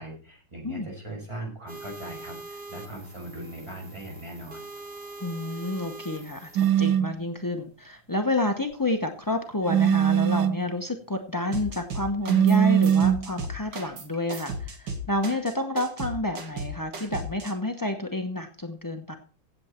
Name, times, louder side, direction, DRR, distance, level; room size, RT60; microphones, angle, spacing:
voice 1, 0.0-4.7, right 1 dB, 15° right, -1 dB, 5.9 m, -39 dB
sound 1, 1.7-6.7, right 2 dB, 30° right, 2.5 m, -43 dB
voice 2, 5.2-19.1, left 2 dB, 30° left, 6 dB, 0.3 m, -29 dB
sound 2, 6.6-7.2 9.7-10.6 12.3-13.3, right 9 dB, 85° right, 1.5 m, -21 dB
sound 3, 11.5-12.6 12.8-17.5, right 1 dB, 65° right, 2.6 m, -35 dB
16.0 x 8.1 x 4.4 m, 0.39 s
omnidirectional pair, 2.1 m